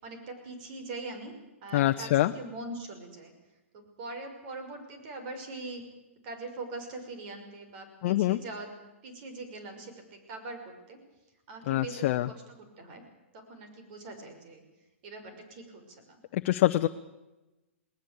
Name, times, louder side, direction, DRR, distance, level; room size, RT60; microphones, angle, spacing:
voice 1, 0.0-1.3 1.6-3.3 3.7-5.8 6.2-8.7 9.0-11.0 11.5-13.0 13.3-14.6 15.0-16.2, right 2 dB, 45° right, 5 dB, 5.8 m, -42 dB
voice 2, 1.7-2.3 8.0-8.4 11.7-12.3 16.3-16.9, left 15 dB, 50° left, 7 dB, 0.8 m, -25 dB
20.0 x 19.5 x 8.4 m, 1.0 s
hypercardioid pair, 140°, 7 cm